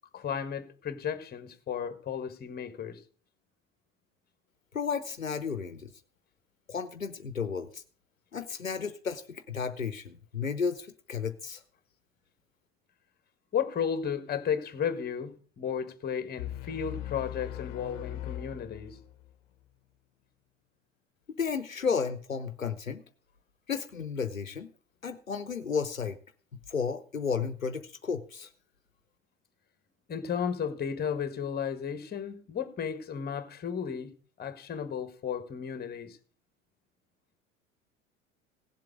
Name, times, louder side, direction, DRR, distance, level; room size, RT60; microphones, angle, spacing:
voice 1, 0.1-3.0 13.5-19.0 30.1-36.2, left 7 dB, 25° left, 1.6 m, -34 dB
voice 2, 4.7-5.9 6.7-7.8 8.3-11.6 21.4-23.0 23.7-24.7 25.0-26.2 26.7-28.5, left 6 dB, 90° left, 0.8 m, -33 dB
sound 1, 16.4-19.3, left 13 dB, 60° left, 0.9 m, -40 dB
17.0 x 7.6 x 5.0 m
figure-of-eight pair, 75°, 39 cm